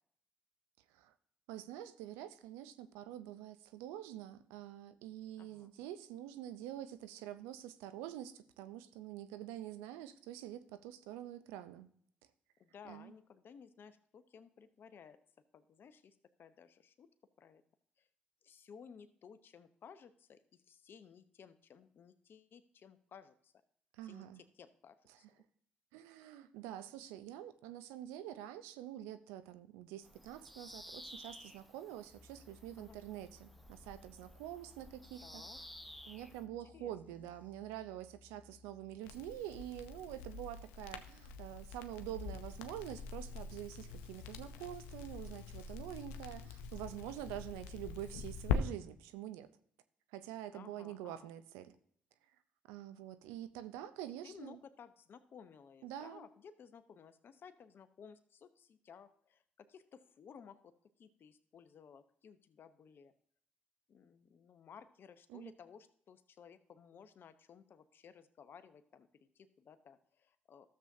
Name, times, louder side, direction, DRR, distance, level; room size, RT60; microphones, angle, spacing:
voice 1, 1.5-11.9 12.8-13.1 24.0-24.4 25.9-35.4 36.1-49.5 50.1-51.7 52.7-54.6 55.8-56.2 65.3-65.5, right 12 dB, 90° right, 12 dB, 0.5 m, -46 dB
voice 2, 5.4-5.9 12.6-15.2 15.5-17.1 17.4-17.6 18.0-18.1 18.4-23.5 24.0-25.3 32.8-33.0 35.2-35.6 36.4-37.3 50.5-51.3 54.2-63.1 63.9-70.7, left 7 dB, 60° left, 11 dB, 0.9 m, -57 dB
Bird vocalization bird call bird song, 30.0-36.4, equal, ahead, 0.7 m, -54 dB
sound 1, 32.1-39.0, left 3 dB, 45° left, 1.4 m, -62 dB
Crackle, 39.0-48.6, left 6 dB, 90° left, 0.6 m, -43 dB
12.5 x 7.4 x 2.7 m, 0.63 s
supercardioid pair, 50°, 4 cm